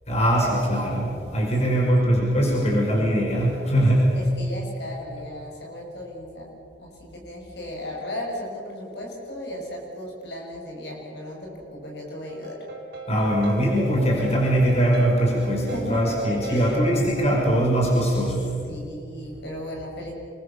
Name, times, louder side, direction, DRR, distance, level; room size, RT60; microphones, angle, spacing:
voice 1, 0.1-4.2 13.1-18.5, equal, 35° left, -3 dB, 5.9 m, -21 dB
voice 2, 1.6-2.8 4.1-12.7 15.5-16.8 18.7-20.1, left 1 dB, 65° left, -1 dB, 6.9 m, -36 dB
sound 1, 12.3-17.4, right 4 dB, 60° right, 4.2 m, -39 dB
28.0 x 22.5 x 7.0 m, 2.6 s
head